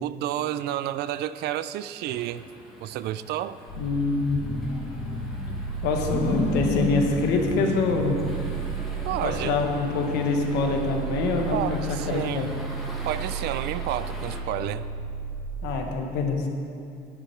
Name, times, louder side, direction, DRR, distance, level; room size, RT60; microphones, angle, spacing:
voice 1, 0.0-2.5 2.8-3.6 9.0-9.6 11.5-12.5 13.0-14.9, right 12 dB, 75° right, 15 dB, 0.4 m, -30 dB
sound 1, 2.0-14.4, equal, ahead, 1.8 m, -43 dB
sound 2, 3.7-15.4, right 4 dB, 70° left, 1.6 m, -34 dB
voice 2, 3.8-4.4 5.8-8.2 9.2-12.5 15.6-16.5, left 3 dB, 90° left, 3 dB, 1.2 m, -25 dB
sound 3, 4.1-9.2 9.8-9.9 10.3-12.0, left 2 dB, 40° left, 1.7 m, -31 dB
10.0 x 9.9 x 4.5 m, 2.5 s
cardioid pair, 110°, 17 cm